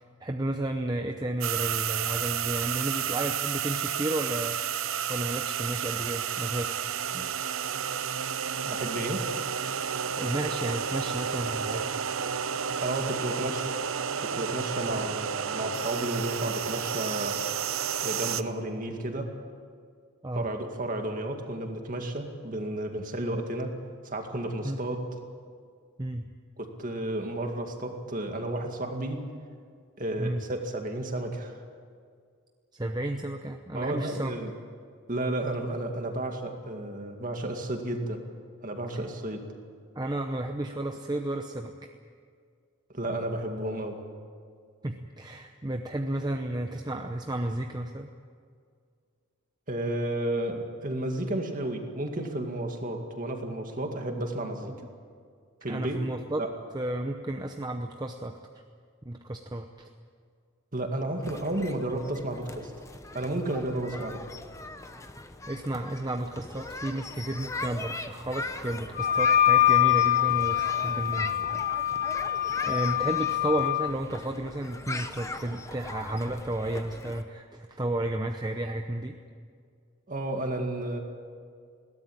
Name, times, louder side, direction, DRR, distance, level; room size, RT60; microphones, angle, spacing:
voice 1, 0.0-4.6 5.1-6.8 7.1-7.3 10.2-11.9 14.9-15.0 20.2-20.5 24.6-24.8 26.0-26.3 30.2-30.4 32.7-34.3 39.9-41.7 44.8-48.1 54.7-54.8 55.7-56.5 56.7-58.4 59.1-59.9 63.9-64.0 65.5-71.4 72.6-79.2, right 1 dB, 20° right, 4 dB, 0.8 m, -32 dB
sound 1, 1.4-18.4, right 8 dB, 65° right, 0.7 m, -31 dB
voice 2, 8.6-9.3 12.8-13.7 14.2-17.4 18.0-19.3 20.3-23.8 24.0-25.2 26.6-29.3 30.0-31.6 33.8-34.5 35.1-38.2 38.6-39.4 42.9-44.0 49.7-54.7 55.6-56.0 56.4-56.5 60.7-62.7 63.1-64.3 80.1-81.0, right 1 dB, 35° right, 4 dB, 2.2 m, -32 dB
sound 2, 61.2-77.2, left 2 dB, 15° left, 0.9 m, -40 dB
Wind instrument woodwind instrument, 69.0-73.9, left 12 dB, 40° left, 0.7 m, -24 dB
21.0 x 17.5 x 8.9 m, 2.1 s
head